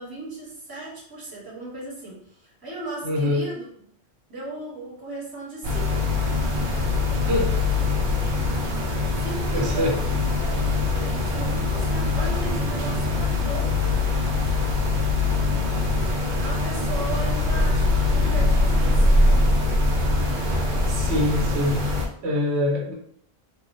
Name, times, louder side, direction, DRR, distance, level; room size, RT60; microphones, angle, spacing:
voice 1, 0.0-3.6 4.3-6.0 9.2-14.0 16.4-19.1, right 2 dB, 20° right, -4 dB, 1.0 m, -37 dB
voice 2, 3.0-3.4 7.3-7.5 9.5-10.0 20.9-21.8 22.2-22.9, left 1 dB, 85° right, -1 dB, 1.1 m, -24 dB
sound 1, 5.6-22.1, left 2 dB, 55° right, 0.8 m, -23 dB
3.4 x 2.2 x 3.0 m, 0.65 s
omnidirectional pair, 1.1 m